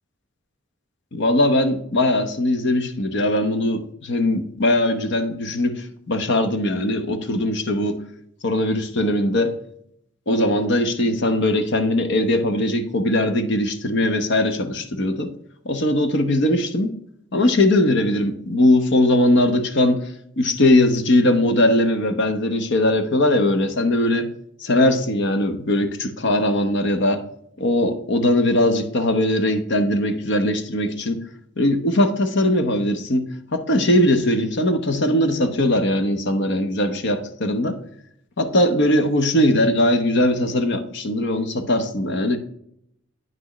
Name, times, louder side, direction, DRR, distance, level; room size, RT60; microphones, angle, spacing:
voice 1, 1.1-8.0 8.4-9.5 10.3-15.3 15.6-16.9 17.3-20.1 20.4-24.3 24.6-27.2 27.6-31.2 31.6-37.8 38.4-42.4, left 1 dB, 60° left, 9 dB, 0.9 m, -20 dB
9.1 x 6.0 x 3.0 m, 0.72 s
head